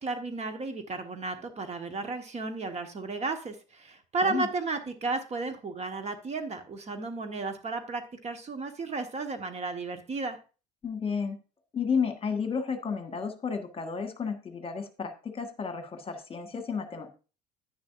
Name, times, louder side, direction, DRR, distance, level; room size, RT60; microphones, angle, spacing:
voice 1, 0.0-10.4, right 3 dB, 30° right, 7 dB, 1.4 m, -33 dB
voice 2, 10.8-11.4 11.7-17.1, left 6 dB, 25° left, 7 dB, 1.6 m, -32 dB
10.5 x 10.0 x 2.6 m, 0.33 s
figure-of-eight pair, 65°, 21 cm